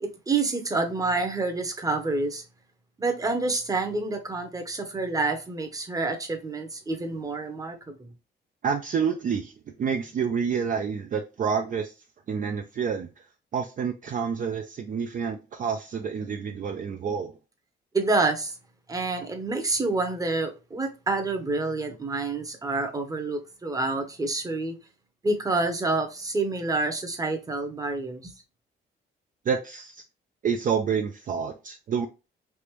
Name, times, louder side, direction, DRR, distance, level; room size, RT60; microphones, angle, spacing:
voice 1, 0.0-2.4 3.0-8.1 17.9-18.5 18.9-24.7 25.2-28.3, right 3 dB, 15° right, 0.8 m, -28 dB
voice 2, 8.6-9.5 9.8-11.9 12.3-13.1 13.5-17.3 29.5-30.0 30.4-32.1, right 6 dB, 40° right, 0.4 m, -28 dB
3.4 x 2.5 x 3.0 m
cardioid pair, 90°, 20 cm